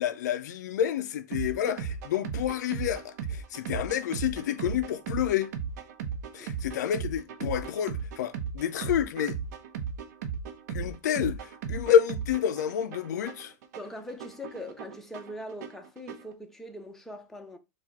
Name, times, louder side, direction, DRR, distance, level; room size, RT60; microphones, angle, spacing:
voice 1, 0.0-5.5 6.3-9.4 10.7-13.5, left 9 dB, 80° left, 0.4 m, -28 dB
sound 1, 1.3-16.3, right 6 dB, 70° right, 0.8 m, -37 dB
voice 2, 13.8-17.6, left 1 dB, 5° left, 0.7 m, -41 dB
4.7 x 2.3 x 4.0 m
hypercardioid pair, 120°, 9 cm